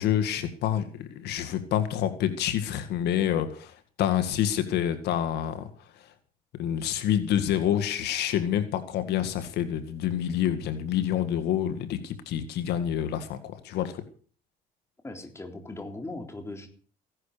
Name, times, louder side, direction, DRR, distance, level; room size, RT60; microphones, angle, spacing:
voice 1, 0.0-3.7 4.0-5.7 6.6-14.0, left 10 dB, 80° left, 9 dB, 1.9 m, -27 dB
voice 2, 15.0-16.7, left 2 dB, 15° left, 5 dB, 3.7 m, -39 dB
16.5 x 11.0 x 6.8 m, 0.42 s
cardioid pair, 110°, 17 cm